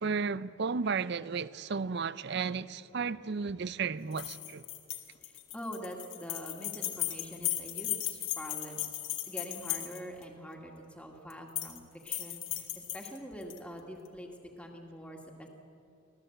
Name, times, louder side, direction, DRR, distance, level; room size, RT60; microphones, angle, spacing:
voice 1, 0.0-4.7, right 5 dB, 55° right, 0.5 m, -33 dB
sound 1, 4.1-10.2 11.3-11.8 12.1-13.6, left 14 dB, 70° left, 1.9 m, -36 dB
voice 2, 5.2-8.8 9.3-14.3 14.6-15.5, equal, 5° left, 2.0 m, -45 dB
25.0 x 16.0 x 7.9 m
head